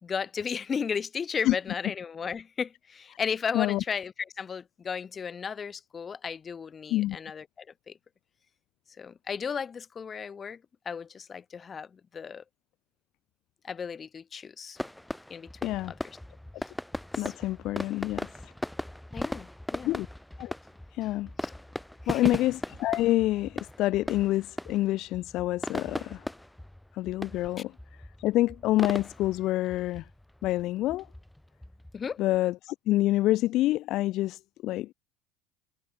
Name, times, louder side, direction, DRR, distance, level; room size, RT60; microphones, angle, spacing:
voice 1, 0.0-7.9 9.0-12.4 13.6-14.8 15.3-16.0 17.2-17.3 19.1-19.9 22.0-22.4 31.9-32.2, left 6 dB, 30° left, 0.9 m, -35 dB
sound 1, 14.8-32.4, left 1 dB, 5° left, 1.4 m, -38 dB
voice 2, 15.6-15.9 17.2-18.5 19.8-20.1 20.4-20.5 20.9-21.3 22.1-26.3 26.9-30.1 30.4-31.1 32.2-34.9, left 16 dB, 55° left, 0.3 m, -27 dB
figure-of-eight pair, 70°, 0 cm